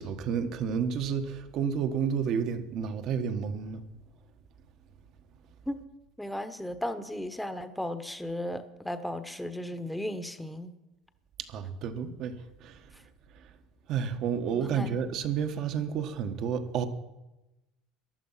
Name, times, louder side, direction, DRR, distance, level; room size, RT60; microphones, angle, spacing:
voice 1, 0.0-3.8 11.5-12.3 12.6-12.8 13.9-16.9, right 7 dB, 55° right, 8 dB, 1.3 m, -30 dB
voice 2, 6.2-10.7 14.5-15.1, left 1 dB, 5° left, 9 dB, 1.1 m, -35 dB
15.0 x 11.0 x 5.7 m, 1.0 s
supercardioid pair, 105°, 0 cm